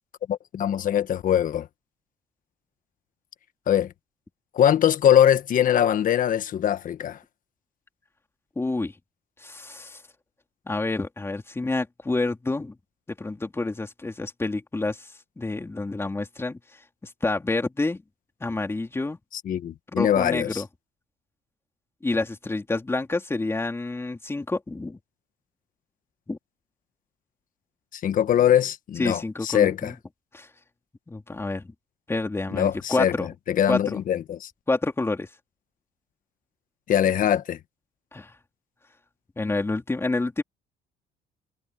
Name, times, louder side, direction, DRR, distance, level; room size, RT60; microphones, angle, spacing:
voice 1, 0.3-1.7 3.7-3.9 4.5-7.2 19.4-20.6 27.9-29.9 32.5-33.1 33.5-34.5 36.9-37.6, left 10 dB, 55° left, 1.5 m, -22 dB
voice 2, 8.5-8.9 9.4-10.0 10.7-12.7 13.2-15.1 15.4-16.6 17.2-18.0 18.4-19.2 20.0-20.7 22.0-25.0 26.3-26.4 29.0-30.0 30.3-30.5 31.1-31.7 32.1-33.3 33.7-34.0 34.7-35.3 38.1-38.3 39.4-40.4, left 2 dB, 15° left, 3.3 m, -28 dB
cardioid pair, 110°, 17 cm